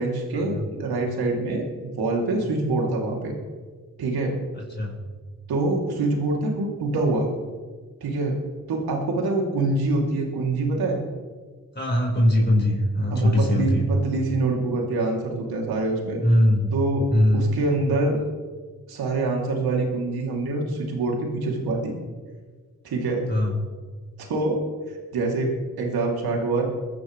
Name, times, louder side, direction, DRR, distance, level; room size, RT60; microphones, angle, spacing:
voice 1, 0.0-1.7 2.0-3.3 4.0-4.3 5.5-7.3 8.0-8.4 8.7-11.0 13.1-16.2 16.7-17.1 17.3-18.2 18.9-21.9 22.8-23.2 24.3-24.6 25.1-25.5 25.8-26.6, right 2 dB, 70° right, 0 dB, 3.1 m, -25 dB
voice 2, 11.7-13.9 16.2-16.7 17.1-17.5 23.3-23.6, left 1 dB, 25° left, -2 dB, 5.0 m, -20 dB
22.5 x 11.0 x 3.3 m, 1.5 s
hypercardioid pair, 40°, 38 cm